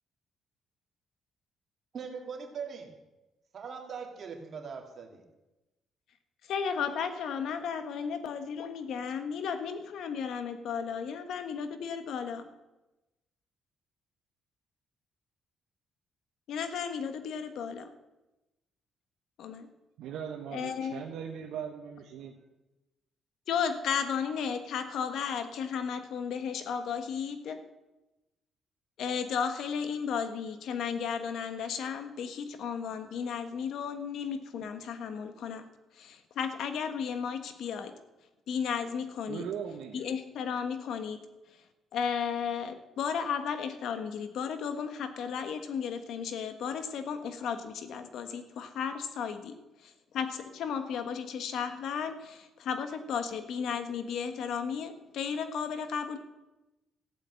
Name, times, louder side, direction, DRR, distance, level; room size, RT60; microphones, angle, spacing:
voice 1, 1.9-2.9 3.5-5.2, right 6 dB, 50° right, 2 dB, 2.4 m, -41 dB
voice 2, 6.5-12.5 16.5-17.9 19.4-19.7 20.5-21.0 23.5-27.6 29.0-35.6 36.0-37.9 38.5-39.4 39.9-41.2 41.9-49.6 49.8-56.2, left 7 dB, 75° left, 9 dB, 1.4 m, -34 dB
voice 3, 20.0-22.3 39.3-40.0, right 8 dB, 85° right, 0 dB, 1.2 m, -39 dB
13.5 x 8.3 x 7.9 m, 1.0 s
cardioid pair, 90°, 0 cm